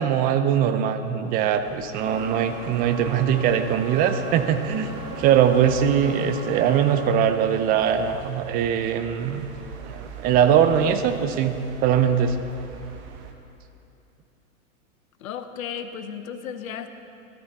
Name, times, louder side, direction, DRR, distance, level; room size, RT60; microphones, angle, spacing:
voice 1, 0.0-9.5 9.8-12.4, right 8 dB, 20° right, 9 dB, 0.4 m, -21 dB
sound 1, 1.5-13.3, right 6 dB, 40° right, 1.2 m, -44 dB
sound 2, 1.9-7.1, right 3 dB, 85° right, 2.1 m, -37 dB
voice 2, 15.2-16.9, left 8 dB, 75° left, 9 dB, 0.9 m, -34 dB
13.0 x 12.5 x 4.1 m, 2.8 s
hypercardioid pair, 120°, 42 cm